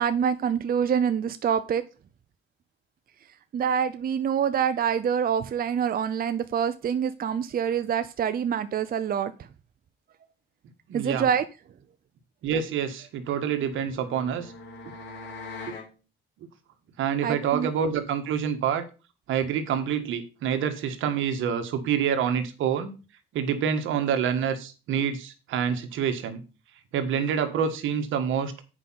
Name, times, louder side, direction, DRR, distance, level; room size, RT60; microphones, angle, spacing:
voice 1, 0.0-1.8 3.5-9.5 10.9-11.4 17.2-17.7, right 8 dB, 50° right, 11 dB, 0.7 m, -26 dB
voice 2, 10.9-11.2 12.4-14.5 17.0-18.8 19.3-22.9 23.3-26.4 26.9-28.5, right 8 dB, 85° right, 8 dB, 1.5 m, -27 dB
sound 1, 13.3-15.9, left 3 dB, 75° left, 3.9 m, -42 dB
8.2 x 5.3 x 5.7 m, 0.32 s
cardioid pair, 90°, 20 cm